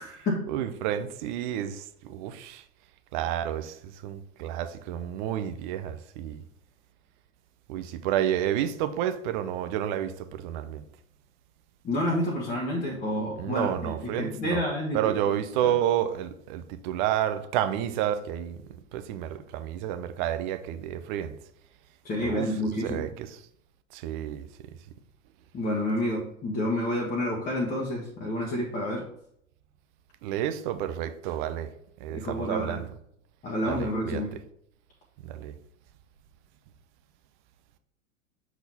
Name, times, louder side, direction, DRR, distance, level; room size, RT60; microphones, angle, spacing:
voice 1, 0.5-2.6 3.1-6.4 7.7-10.8 13.4-14.6 14.9-21.3 22.2-22.5 22.8-23.4 23.9-24.5 30.2-31.7 32.0-32.8 33.6-34.2 35.2-35.5, right 11 dB, 35° right, 0.6 m, -30 dB
voice 2, 11.8-15.1 15.6-15.7 22.0-23.1 25.5-29.0 32.1-32.8 33.4-34.3, left 1 dB, 20° left, 1.3 m, -29 dB
7.1 x 4.0 x 4.1 m
figure-of-eight pair, 90°, 40 cm